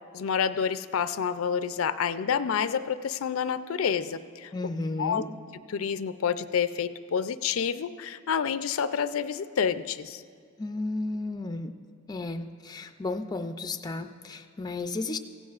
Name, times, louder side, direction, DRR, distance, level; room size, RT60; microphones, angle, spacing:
voice 1, 0.1-4.5 5.0-5.2 5.7-10.2, left 7 dB, 85° left, 13 dB, 0.4 m, -28 dB
voice 2, 4.5-5.3 10.6-11.8 12.1-15.2, left 2 dB, 20° left, 7 dB, 0.4 m, -33 dB
16.0 x 16.0 x 2.4 m, 2.2 s
head